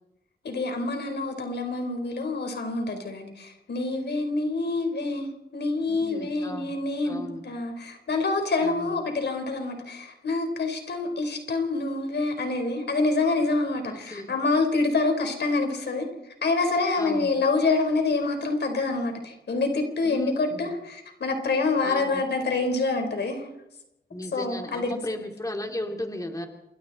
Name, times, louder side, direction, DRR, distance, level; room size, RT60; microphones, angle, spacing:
voice 1, 0.4-16.1 16.4-23.5 24.3-25.2, left 3 dB, 80° left, 5 dB, 4.6 m, -27 dB
voice 2, 5.9-6.7 7.0-7.4 8.6-8.9 13.9-14.3 17.0-17.3 20.0-20.7 21.8-22.3 24.1-26.5, left 1 dB, 20° left, 3 dB, 3.1 m, -35 dB
28.0 x 21.5 x 4.3 m, 0.89 s
cardioid pair, 70°, 17 cm